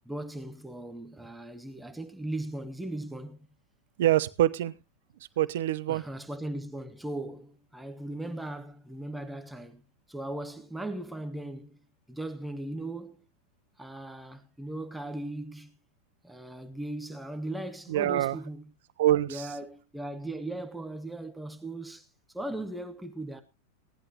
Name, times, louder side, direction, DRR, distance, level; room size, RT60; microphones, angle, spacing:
voice 1, 0.0-3.4 5.9-9.8 10.1-11.8 12.1-13.2 13.8-15.7 16.2-18.6 19.3-23.4, right 1 dB, 5° right, 1.3 m, -38 dB
voice 2, 4.0-4.7 5.4-6.0 17.9-18.4 19.0-19.5, right 13 dB, 55° right, 0.8 m, -25 dB
17.5 x 11.0 x 2.9 m
figure-of-eight pair, 90°, 0 cm